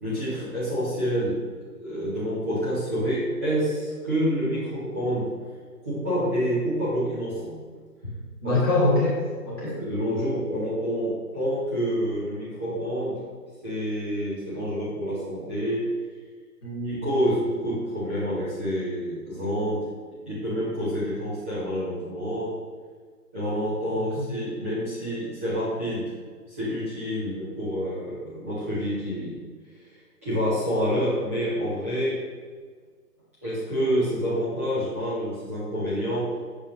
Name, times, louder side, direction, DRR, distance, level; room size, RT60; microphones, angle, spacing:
voice 1, 0.0-1.5 1.8-5.3 5.8-7.6 8.0-8.1 8.4-8.6 9.6-13.2 13.6-15.9 16.8-19.9 20.2-22.6 23.3-26.1 26.5-29.4 30.2-32.2 33.4-36.5, equal, 10° right, -16 dB, 0.8 m, -28 dB
voice 2, 8.4-9.8 16.6-17.1 24.2-24.3, left 2 dB, 15° left, -8 dB, 1.2 m, -24 dB
7.5 x 6.8 x 2.6 m, 1.6 s
figure-of-eight pair, 150°, 47 cm